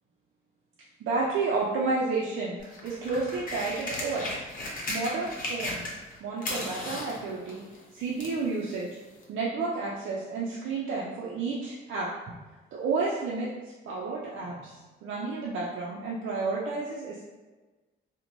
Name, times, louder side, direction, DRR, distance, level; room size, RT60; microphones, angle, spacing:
voice 1, 1.0-4.4 4.9-5.8 6.2-8.9 9.3-12.1 12.7-13.5 13.9-17.2, right 3 dB, 75° right, -5 dB, 0.5 m, -31 dB
sound 1, 2.6-6.1 6.4-8.4 9.2-9.3, left 1 dB, 45° left, 0.8 m, -35 dB
2.9 x 2.1 x 2.6 m, 1.2 s
cardioid pair, 90°, 20 cm